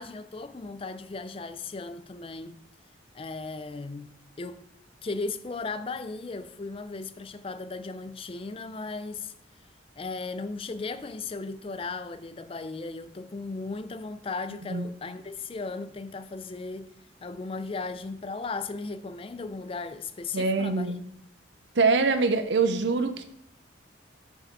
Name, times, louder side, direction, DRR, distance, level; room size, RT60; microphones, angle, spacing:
voice 1, 0.0-2.5 3.1-4.1 4.4-4.6 5.0-9.3 10.0-16.9 17.2-20.9, left 3 dB, 30° left, 0.4 m, -36 dB
voice 2, 20.3-21.0 21.8-23.2, right 4 dB, 70° right, 0.7 m, -24 dB
6.6 x 5.0 x 5.3 m
head